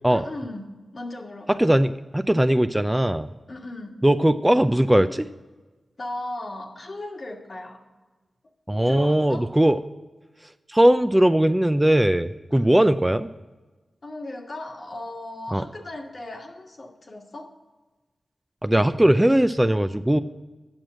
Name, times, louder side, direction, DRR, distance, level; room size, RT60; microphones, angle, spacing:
voice 1, 0.1-1.7 3.5-4.0 6.0-7.8 8.8-9.5 12.5-12.8 14.0-17.6, left 2 dB, 55° left, 2 dB, 1.6 m, -37 dB
voice 2, 1.6-3.3 4.0-5.3 8.7-9.8 10.7-13.3 15.5-15.6 18.6-20.2, right 1 dB, 15° right, 10 dB, 0.5 m, -19 dB
8.9 x 6.2 x 7.6 m, 1.2 s
cardioid pair, 40°, 0 cm